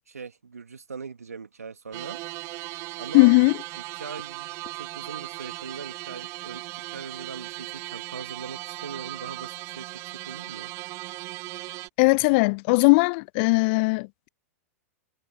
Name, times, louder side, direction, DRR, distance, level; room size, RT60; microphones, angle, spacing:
voice 1, 0.1-2.2 3.0-3.3 3.8-10.7, right 5 dB, 80° right, 1.8 m, -41 dB
sound 1, 1.9-11.9, right 21 dB, 35° right, 0.4 m, -38 dB
voice 2, 3.1-3.5 12.0-14.3, left 29 dB, 45° left, 0.4 m, -19 dB
figure-of-eight pair, 100°, 8 cm